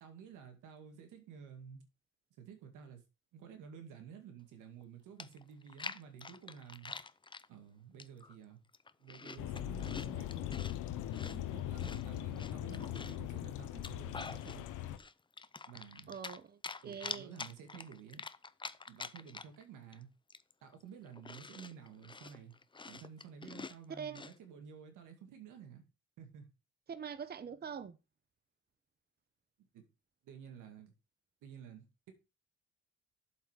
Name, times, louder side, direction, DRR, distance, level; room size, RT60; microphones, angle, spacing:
voice 1, 0.0-1.8 2.4-3.0 3.3-7.0 7.5-8.6 9.0-10.6 11.2-14.7 15.7-16.2 16.8-18.2 18.9-20.1 20.6-22.5 22.9-25.8 26.2-26.5 29.7-29.8 30.2-30.9 31.4-32.1, right 7 dB, 90° right, 2.2 m, -52 dB
Chewing mastication, 4.8-4.9 5.2-7.5 8.0-8.3 8.7-10.7 11.1-13.2 13.7-14.6 15.0-16.4 16.6-19.6 19.9-20.0 20.3-24.3, left 4 dB, 15° left, 0.6 m, -46 dB
sound 1, 9.4-15.0, left 13 dB, 85° left, 0.9 m, -40 dB
voice 2, 16.1-17.3 24.0-24.2 26.9-28.0, right 7 dB, 30° right, 0.8 m, -44 dB
7.7 x 5.5 x 5.0 m
cardioid pair, 90°, 30 cm